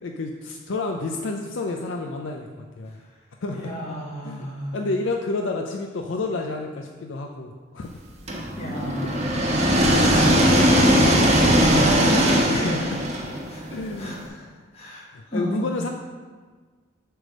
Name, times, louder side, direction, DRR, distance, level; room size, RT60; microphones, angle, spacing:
voice 1, 0.0-3.0 3.4-3.7 4.2-8.0 8.9-9.1 12.5-13.0 13.7-14.2 15.1-15.9, left 3 dB, 65° left, 3 dB, 0.5 m, -30 dB
voice 2, 3.5-4.8 8.6-9.2 10.7-12.7 13.5-13.6 14.0-14.5 14.7-15.0 15.3-15.7, equal, 30° left, -4 dB, 1.4 m, -31 dB
sound 1, 8.3-14.2, equal, 35° right, 1.0 m, -19 dB
7.7 x 3.4 x 6.2 m, 1.5 s
head